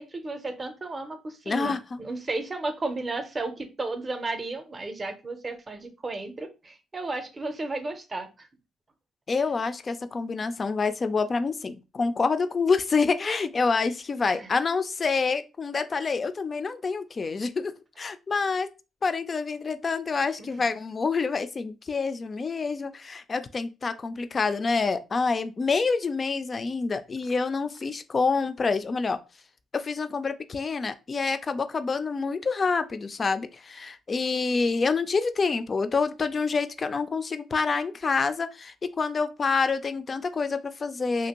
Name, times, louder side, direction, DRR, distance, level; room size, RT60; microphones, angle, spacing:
voice 1, 0.0-8.5 14.3-14.5 20.4-20.6, right 2 dB, 30° right, 0.6 m, -34 dB
voice 2, 1.5-2.0 9.3-18.7 19.0-29.2 29.7-41.3, left 4 dB, 35° left, 0.3 m, -27 dB
2.8 x 2.5 x 2.9 m
cardioid pair, 90°, 0 cm